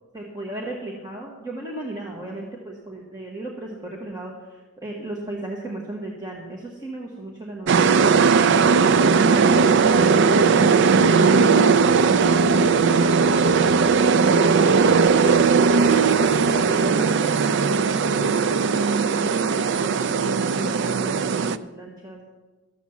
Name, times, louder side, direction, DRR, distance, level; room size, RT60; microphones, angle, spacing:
voice 1, 0.1-3.7 4.0-4.3 4.8-7.8 8.3-10.0 10.3-12.5 15.6-22.2, right 1 dB, 15° right, -2 dB, 1.3 m, -35 dB
sound 1, 7.7-21.6, right 5 dB, 55° right, 0.4 m, -18 dB
13.0 x 7.2 x 7.0 m, 1.2 s
head